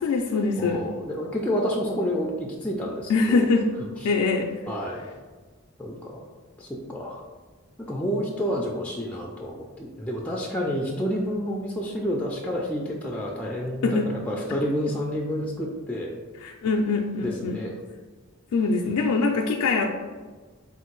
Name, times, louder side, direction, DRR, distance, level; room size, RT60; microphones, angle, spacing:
voice 1, 0.0-0.9 3.1-3.7 4.0-4.6 13.8-14.1 14.5-14.6 16.4-17.6 18.5-19.9, left 3 dB, 90° left, 2 dB, 0.4 m, -23 dB
voice 2, 0.6-3.5 4.7-5.1 5.8-6.3 6.6-7.2 7.8-16.1 17.2-17.7, equal, 5° left, -2 dB, 0.3 m, -29 dB
3.7 x 2.5 x 4.5 m, 1.4 s
head